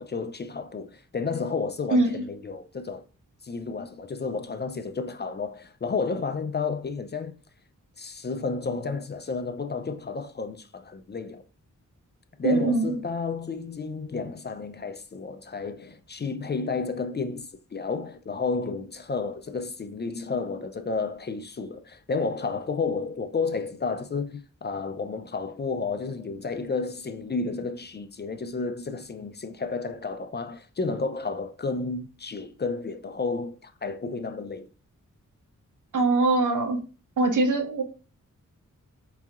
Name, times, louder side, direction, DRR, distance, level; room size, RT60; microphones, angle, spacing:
voice 1, 0.0-3.0 3.4-7.4 8.0-11.4 12.4-34.7, left 4 dB, 35° left, 0.4 m, -31 dB
voice 2, 1.9-2.2 12.4-13.0 35.9-36.8 37.2-37.8, right 2 dB, 75° right, 0.8 m, -22 dB
4.8 x 2.7 x 2.4 m
wide cardioid pair, 80°, 32 cm